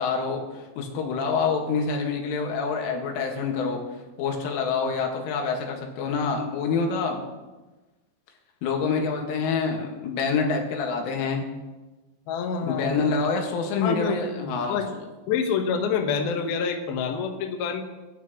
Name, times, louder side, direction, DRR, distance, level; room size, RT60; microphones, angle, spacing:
voice 1, 0.0-3.8 4.2-7.2 8.6-11.5 12.6-15.0, left 5 dB, 85° left, 2 dB, 4.3 m, -26 dB
voice 2, 12.3-13.2 13.8-14.9 15.3-17.8, left 6 dB, 65° left, 3 dB, 2.7 m, -27 dB
24.0 x 12.0 x 3.1 m, 1.2 s
omnidirectional pair, 5.6 m